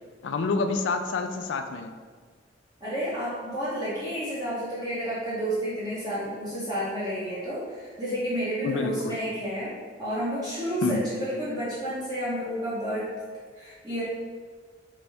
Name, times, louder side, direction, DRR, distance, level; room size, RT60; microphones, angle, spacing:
voice 1, 0.2-1.9 8.6-9.2 10.8-11.0, left 4 dB, 85° left, 7 dB, 0.4 m, -28 dB
voice 2, 2.8-9.7 10.0-13.1 13.6-14.0, equal, 20° right, -11 dB, 1.0 m, -30 dB
4.0 x 3.5 x 3.4 m, 1.5 s
head